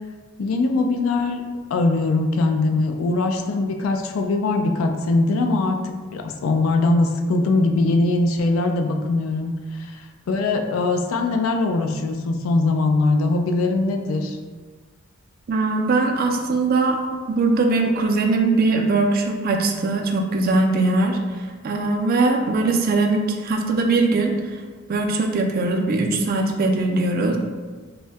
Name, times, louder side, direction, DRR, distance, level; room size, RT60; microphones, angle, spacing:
voice 1, 0.4-1.4 1.7-14.4, left 2 dB, 85° left, 5 dB, 0.3 m, -21 dB
voice 2, 15.5-17.0 17.3-24.3 24.9-27.4, right 3 dB, 45° right, 3 dB, 0.3 m, -21 dB
2.6 x 2.2 x 3.3 m, 1.4 s
head